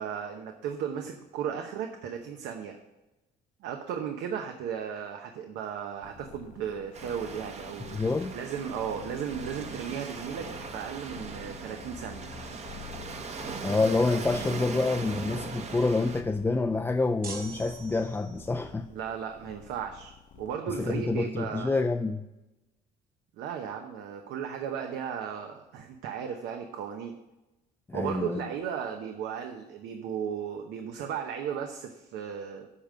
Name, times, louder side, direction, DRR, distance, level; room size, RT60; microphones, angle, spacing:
voice 1, 0.0-2.8 3.6-8.0 8.3-12.3 18.9-21.8 23.4-27.1 27.9-32.7, right 8 dB, 85° right, 5 dB, 0.9 m, -35 dB
sound 1, 6.0-20.6, left 7 dB, 50° left, 0.8 m, -48 dB
Waves surf, 6.9-16.2, right 5 dB, 40° right, 1.0 m, -40 dB
voice 2, 7.9-8.3 13.6-18.9 20.8-22.2 27.9-28.5, left 3 dB, 10° left, 5 dB, 0.4 m, -27 dB
sound 2, 17.2-18.6, right 5 dB, 60° right, 1.8 m, -43 dB
8.5 x 5.2 x 7.6 m, 0.99 s
cardioid pair, 110°, 17 cm